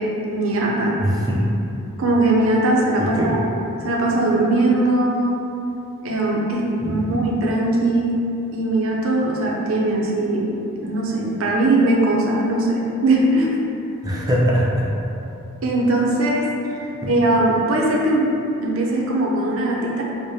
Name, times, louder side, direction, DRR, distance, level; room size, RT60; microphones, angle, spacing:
voice 1, 0.0-1.0 2.0-3.4 3.8-5.4 6.0-8.1 8.5-13.6 15.6-16.5 17.1-18.3 18.6-20.0, right 2 dB, 70° right, -2 dB, 0.5 m, -20 dB
voice 2, 1.0-1.5 3.0-3.4 6.8-7.1 14.0-14.9 17.0-17.1, equal, 15° right, -5 dB, 0.4 m, -21 dB
4.8 x 2.1 x 2.7 m, 2.8 s
head